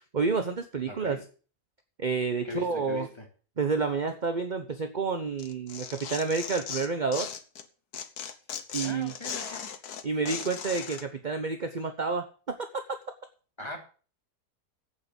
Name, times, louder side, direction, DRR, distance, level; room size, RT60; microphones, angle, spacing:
voice 1, 0.1-1.2 2.0-3.1 3.6-7.3 8.7-9.1 10.0-12.5, right 4 dB, 35° right, 0.9 m, -29 dB
voice 2, 0.9-1.2 2.4-3.3 8.8-9.8 13.6-13.8, equal, 15° left, 3.1 m, -39 dB
Tearing, 5.4-7.6 7.9-11.0, left 7 dB, 70° left, 1.6 m, -37 dB
8.8 x 8.7 x 8.2 m
omnidirectional pair, 1.8 m